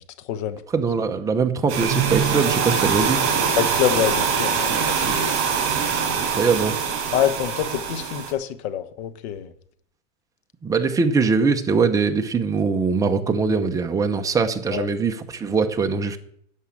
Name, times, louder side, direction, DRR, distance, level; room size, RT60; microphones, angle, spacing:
voice 1, 0.2-0.8 3.5-5.2 7.1-9.5 14.7-14.9, left 10 dB, 60° left, 12 dB, 1.3 m, -26 dB
voice 2, 0.7-3.2 6.3-6.8 10.6-16.2, right 5 dB, 10° right, 5 dB, 0.8 m, -22 dB
sound 1, 1.7-8.3, right 6 dB, 40° right, 5.0 m, -23 dB
11.0 x 7.2 x 8.5 m, 0.68 s
supercardioid pair, 155°, 37 cm